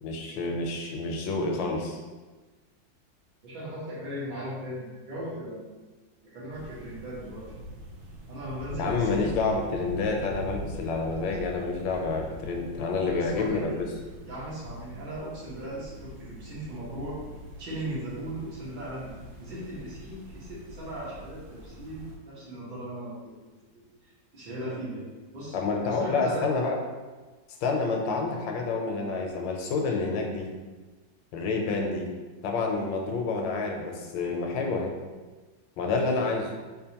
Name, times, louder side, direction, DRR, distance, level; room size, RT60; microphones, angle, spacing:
voice 1, 0.0-2.0 8.8-13.9 25.5-26.7 27.6-30.5 31.3-32.1 32.4-34.9 35.8-36.5, left 3 dB, 80° left, 1 dB, 1.3 m, -28 dB
voice 2, 3.4-5.7 6.2-7.4 8.3-9.3 13.0-13.8 14.3-17.2 17.6-19.1 19.4-25.0 25.3-25.6 25.9-26.5, right 1 dB, 65° right, -8 dB, 1.9 m, -38 dB
sound 1, 6.5-22.2, left 1 dB, 80° right, 1.5 m, -43 dB
4.9 x 2.4 x 2.8 m, 1.3 s
omnidirectional pair, 2.1 m